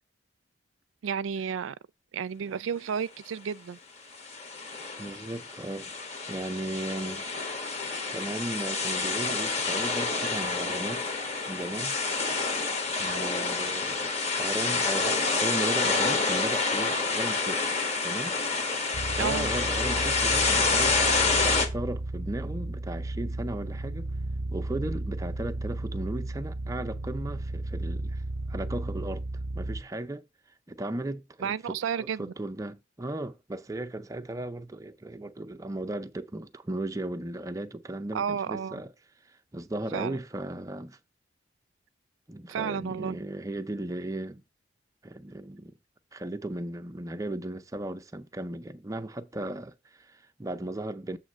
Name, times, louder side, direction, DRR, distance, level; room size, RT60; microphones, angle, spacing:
voice 1, 1.0-1.8 2.1-3.8 19.2-19.5 31.4-32.3 38.1-38.8 39.9-40.2 42.5-43.2, right 7 dB, 85° right, 0.4 m, -32 dB
sound 1, 4.2-21.7, left 4 dB, 35° left, 1.2 m, -28 dB
voice 2, 5.0-5.9 6.3-7.2 7.7-11.0 11.5-12.0 13.0-17.6 18.0-18.4 19.1-24.1 24.5-28.2 28.5-29.2 29.6-30.3 30.7-38.9 39.3-41.0 42.3-44.4 45.0-45.7 46.1-51.2, right 1 dB, 15° right, 0.5 m, -36 dB
sound 2, 18.9-29.8, right 2 dB, 55° right, 0.7 m, -34 dB
7.5 x 3.1 x 6.1 m
head